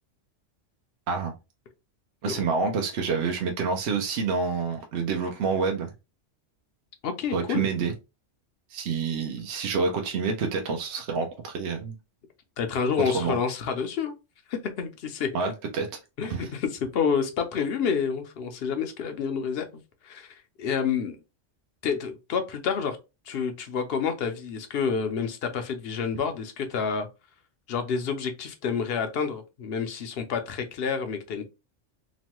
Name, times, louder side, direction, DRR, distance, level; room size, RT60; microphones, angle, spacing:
voice 1, 2.2-5.9 7.3-7.9 8.7-12.0 13.1-13.4 15.3-15.9 16.3-16.5, right 5 dB, 65° right, 0.8 m, -28 dB
voice 2, 7.0-7.7 12.6-14.1 14.5-15.5 16.2-19.7 20.0-21.2 21.8-23.0 23.3-27.1 27.7-31.5, left 6 dB, 60° left, 0.7 m, -29 dB
3.0 x 2.1 x 2.9 m
omnidirectional pair, 1.3 m